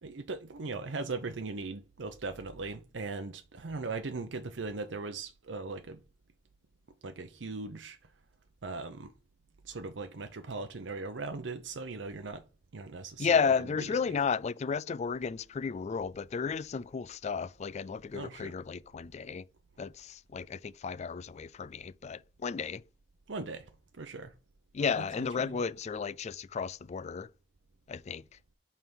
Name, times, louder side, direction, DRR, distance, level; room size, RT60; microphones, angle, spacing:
voice 1, 0.0-6.0 7.0-8.0 8.6-9.1 9.6-12.4 12.7-14.1 18.1-18.5 23.3-23.7 24.0-24.3 24.9-25.6, right 3 dB, 85° right, 0.7 m, -39 dB
voice 2, 13.2-19.4 19.8-22.8 24.7-27.3 27.9-28.2, left 6 dB, 40° left, 0.3 m, -33 dB
5.5 x 4.7 x 5.3 m
head